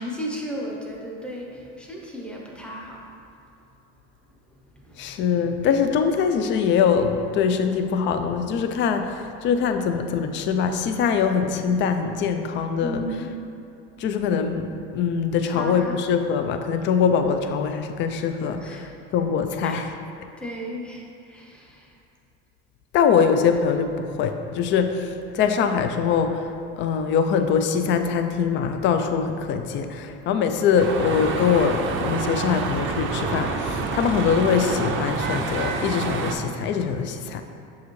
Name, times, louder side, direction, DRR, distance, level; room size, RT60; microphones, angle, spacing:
voice 1, 0.0-3.1 4.8-5.0 12.8-13.3 15.5-16.0 18.6-18.9 19.6-19.8 20.4-22.0, equal, 5° left, -3 dB, 0.8 m, -34 dB
voice 2, 5.0-13.0 14.0-19.9 22.9-26.5 26.8-37.4, left 6 dB, 40° left, 7 dB, 0.4 m, -23 dB
sound 1, 30.8-36.3, right 4 dB, 40° right, 0.5 m, -27 dB
6.9 x 4.7 x 3.1 m, 2.7 s
cardioid pair, 135°, 31 cm